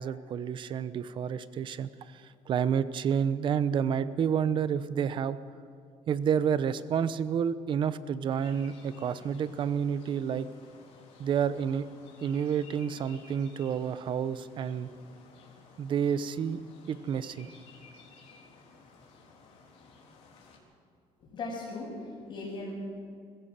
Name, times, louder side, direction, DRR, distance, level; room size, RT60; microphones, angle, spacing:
voice 1, 0.0-5.4 6.1-10.5 11.2-11.9 12.2-14.9 15.8-16.6 16.9-17.5, right 7 dB, 45° right, 14 dB, 0.8 m, -29 dB
sound 1, 8.4-20.6, left 4 dB, 60° left, 3.9 m, -55 dB
voice 2, 21.2-22.7, left 3 dB, 40° left, -8 dB, 6.0 m, -38 dB
22.0 x 15.5 x 7.5 m, 2.2 s
cardioid pair, 155°, 12 cm